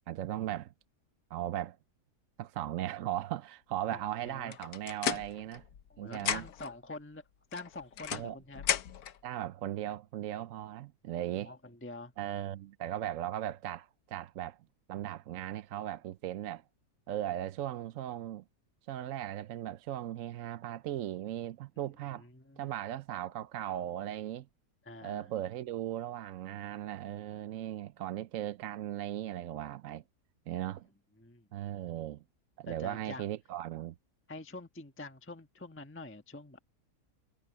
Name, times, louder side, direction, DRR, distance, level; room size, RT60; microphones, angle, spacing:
voice 1, 0.1-0.7 1.3-1.8 2.4-5.6 6.0-6.5 8.1-8.4 9.2-11.5 12.2-14.6 14.9-16.6 17.1-18.4 18.9-22.2 22.6-24.5 25.0-30.0 30.5-30.9 31.5-32.2 32.6-33.9, right 12 dB, 65° right, 0.9 m, -37 dB
voice 2, 3.9-4.6 5.9-7.2 7.5-8.7 11.4-12.1 22.2-22.7 24.8-25.3 31.2-31.5 32.7-33.3 34.3-36.6, left 2 dB, 10° left, 1.1 m, -46 dB
sound 1, 4.5-5.9 6.1-6.7 7.5-9.2, left 9 dB, 70° left, 1.4 m, -35 dB
omnidirectional pair, 1.7 m